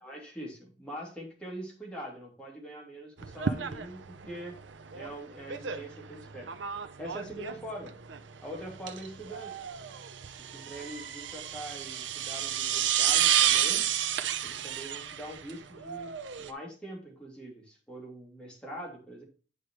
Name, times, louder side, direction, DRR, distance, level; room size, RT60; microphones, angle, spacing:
voice 1, 0.0-4.6 4.9-6.5 7.0-8.0 8.4-9.6 10.5-13.9 14.4-19.2, right 1 dB, 5° left, -2 dB, 2.8 m, -43 dB
sound 1, 3.2-16.5, right 9 dB, 90° right, 0.7 m, -31 dB
9.7 x 5.0 x 3.1 m, 0.37 s
head